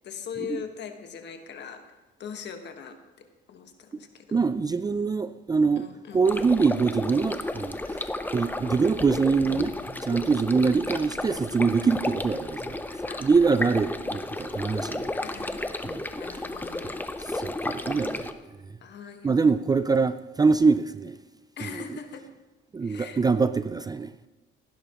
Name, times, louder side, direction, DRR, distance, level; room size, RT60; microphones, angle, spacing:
voice 1, 0.0-1.8 2.2-3.0 3.5-4.4 5.8-6.2 9.5-10.3 13.0-13.3 15.2-17.0 18.8-19.3 21.6-22.3 22.8-23.2, left 7 dB, 55° left, 1.4 m, -41 dB
voice 2, 4.3-5.9 6.1-9.7 10.0-15.2 15.8-16.1 17.2-18.7 19.2-21.2 21.6-21.7 22.7-24.1, right 4 dB, 20° right, 0.3 m, -24 dB
sound 1, 6.2-18.3, left 2 dB, 10° left, 0.7 m, -33 dB
16.0 x 11.0 x 3.0 m
cardioid pair, 105°, 21 cm